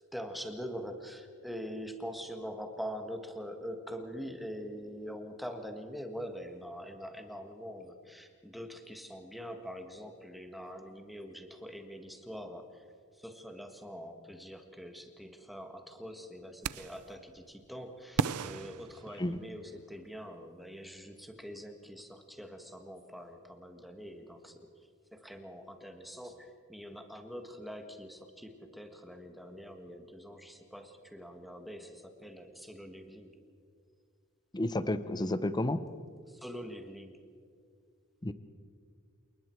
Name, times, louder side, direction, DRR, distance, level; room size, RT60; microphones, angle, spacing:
voice 1, 0.1-33.3 36.3-37.2, equal, ahead, 5 dB, 1.6 m, -44 dB
sound 1, 16.6-17.1 18.2-19.7, right 6 dB, 85° right, 0.6 m, -35 dB
voice 2, 34.5-35.8 38.2-38.3, left 1 dB, 20° left, 13 dB, 0.7 m, -31 dB
28.0 x 20.0 x 4.6 m, 2.2 s
head